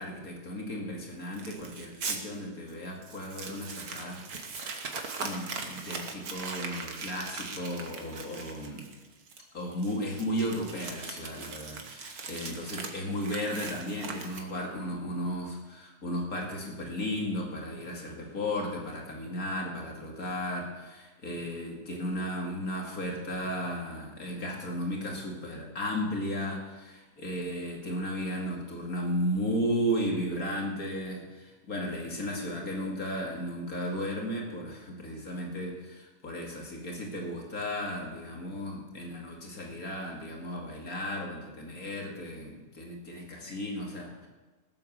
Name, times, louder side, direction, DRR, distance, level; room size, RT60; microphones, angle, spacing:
voice 1, 0.0-4.8 5.2-8.9 9.5-44.3, equal, 75° left, -1 dB, 2.8 m, -35 dB
Crumpling crinkling, 1.3-2.2 2.7-2.8 3.0-14.7, right 4 dB, 85° right, 1.9 m, -40 dB
17.5 x 7.9 x 6.6 m, 1.2 s
omnidirectional pair, 1.5 m